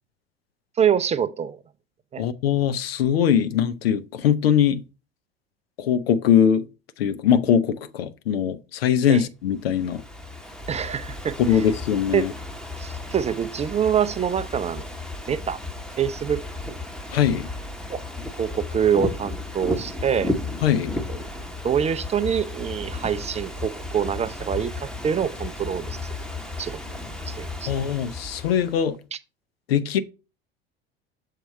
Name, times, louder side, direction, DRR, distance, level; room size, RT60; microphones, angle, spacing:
voice 1, 0.8-1.6 2.1-2.2 9.1-9.2 10.7-11.4 12.1-12.2 12.8-14.9 15.3-15.6 16.0-16.4 17.9-18.0 18.4-20.3 21.1-21.2 21.6-26.0 26.6-26.8 27.3-27.7, right 8 dB, 20° right, 0.4 m, -25 dB
voice 2, 2.2-4.8 5.8-6.7 7.0-10.0 11.4-12.3 17.1-17.5 20.6-20.9 27.7-29.0 29.7-30.0, left 9 dB, 75° left, 0.7 m, -21 dB
Ocean / Fireworks, 9.6-28.9, left 2 dB, ahead, 0.9 m, -34 dB
6.5 x 4.6 x 4.2 m
figure-of-eight pair, 70°, 31 cm